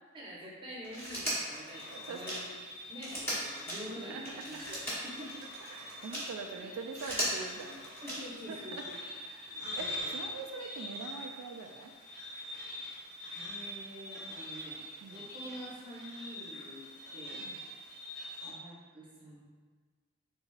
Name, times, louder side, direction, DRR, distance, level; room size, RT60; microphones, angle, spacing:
voice 1, 0.1-2.4 2.9-4.6 5.0-5.3 6.6-6.7 8.0-8.8 13.3-14.8 15.1-16.8 17.1-17.4 18.4-19.4, equal, 25° right, -6 dB, 0.7 m, -46 dB
Telephone, 0.8-6.3 6.8-8.5 9.8-9.9, equal, 10° left, 0.8 m, -38 dB
sound 1, 1.7-18.5, left 1 dB, 50° left, 1.1 m, -44 dB
voice 2, 1.9-2.4 4.1-4.6 5.7-7.8 8.5-8.9 9.2-11.9 15.0-15.2 17.4-17.6, right 4 dB, 90° right, 4 dB, 0.3 m, -44 dB
3.4 x 3.2 x 2.3 m, 1.5 s
head